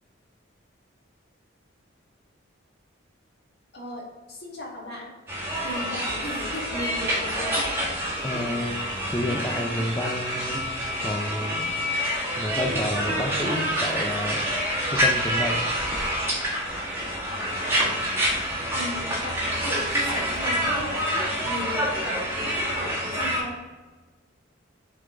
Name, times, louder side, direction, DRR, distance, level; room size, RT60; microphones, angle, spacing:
voice 1, 3.7-5.1 5.6-7.8 17.6-18.0 18.8-23.6, left 1 dB, 55° left, -2 dB, 1.8 m, -37 dB
sound 1, 5.3-23.4, equal, 10° right, 1.6 m, -27 dB
voice 2, 8.2-8.8 9.1-10.6 11.0-11.7 12.4-14.4 14.9-15.6, left 1 dB, 15° left, 1 dB, 0.4 m, -29 dB
7.8 x 4.0 x 3.7 m, 1.3 s
head